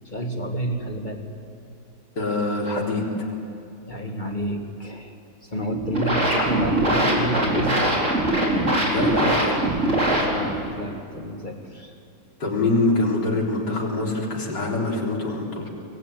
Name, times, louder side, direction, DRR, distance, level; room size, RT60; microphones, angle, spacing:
voice 1, 0.1-1.2 3.9-5.1 5.4-7.9 10.1-12.0, equal, 25° left, 4 dB, 2.0 m, -30 dB
voice 2, 2.2-3.3 8.9-9.6 12.4-15.7, left 2 dB, 60° left, -2 dB, 4.3 m, -24 dB
sound 1, 5.7-10.7, right 1 dB, 35° right, 4.7 m, -22 dB
25.0 x 21.5 x 9.4 m, 2.6 s
omnidirectional pair, 2.0 m